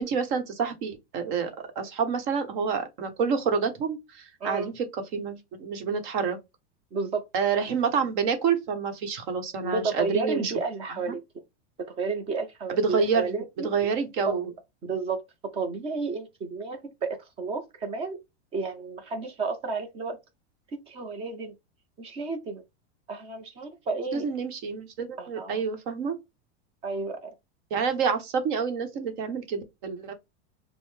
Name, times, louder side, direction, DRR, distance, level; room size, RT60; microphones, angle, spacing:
voice 1, 0.0-4.8 5.1-6.4 7.3-10.5 10.9-11.2 12.7-13.3 13.6-14.5 24.1-26.2 27.7-30.1, right 6 dB, 45° right, 1.0 m, -28 dB
voice 2, 6.9-7.2 9.6-11.2 12.0-13.7 14.3-14.4 14.8-15.2 15.5-18.2 18.5-20.2 20.9-21.5 22.0-22.6 23.1-24.3 25.2-25.6 26.8-27.3, right 4 dB, 15° right, 0.5 m, -31 dB
5.3 x 2.0 x 3.1 m
supercardioid pair, 165°, 35 cm